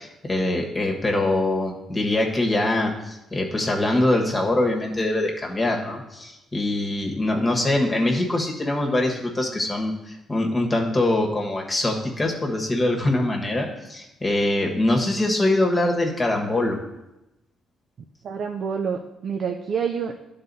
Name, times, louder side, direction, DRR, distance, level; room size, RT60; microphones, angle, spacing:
voice 1, 0.0-16.8, left 1 dB, 20° left, 1 dB, 1.4 m, -23 dB
voice 2, 18.2-20.2, right 6 dB, 55° right, 4 dB, 0.5 m, -27 dB
11.0 x 3.9 x 4.1 m, 0.94 s
cardioid pair, 90°, 0 cm